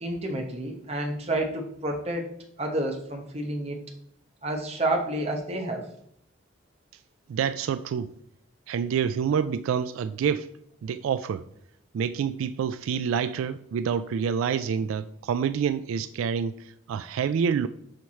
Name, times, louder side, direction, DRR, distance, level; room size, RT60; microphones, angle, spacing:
voice 1, 0.0-3.8 4.4-5.9, right 1 dB, 30° right, 1.0 m, -30 dB
voice 2, 7.3-8.1 8.7-10.5 10.8-11.4 11.9-17.7, right 7 dB, 85° right, 0.3 m, -27 dB
6.4 x 4.5 x 4.2 m
head